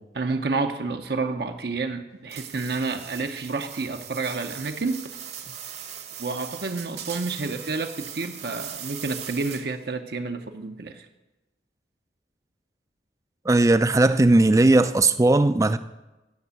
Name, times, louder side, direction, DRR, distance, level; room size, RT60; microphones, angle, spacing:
voice 1, 0.1-5.2 6.2-11.1, right 3 dB, 60° right, 6 dB, 0.7 m, -29 dB
sound 1, 2.3-9.9, right 9 dB, 40° right, 0.9 m, -39 dB
voice 2, 13.5-15.8, right 2 dB, 20° right, 12 dB, 0.4 m, -18 dB
10.5 x 6.0 x 8.2 m, 1.0 s
head